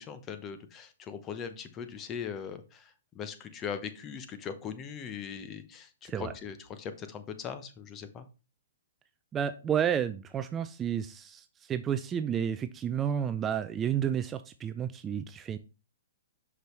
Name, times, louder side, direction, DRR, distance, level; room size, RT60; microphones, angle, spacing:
voice 1, 0.0-8.3, left 7 dB, 25° left, 10 dB, 0.8 m, -40 dB
voice 2, 9.3-15.6, right 8 dB, 20° right, 10 dB, 0.3 m, -31 dB
6.0 x 5.2 x 3.2 m, 0.31 s
hypercardioid pair, 135°, 0 cm